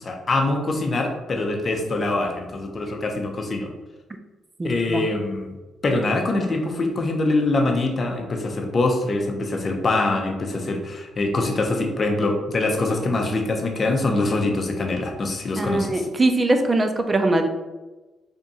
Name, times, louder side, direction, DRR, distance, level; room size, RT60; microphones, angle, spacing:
voice 1, 0.0-3.7 4.6-5.5 5.8-16.0, left 2 dB, 40° left, 3 dB, 0.7 m, -24 dB
voice 2, 4.6-5.1 15.6-17.5, right 2 dB, 25° right, 7 dB, 0.4 m, -21 dB
3.6 x 2.5 x 4.1 m, 1.2 s
cardioid pair, 90°, 0 cm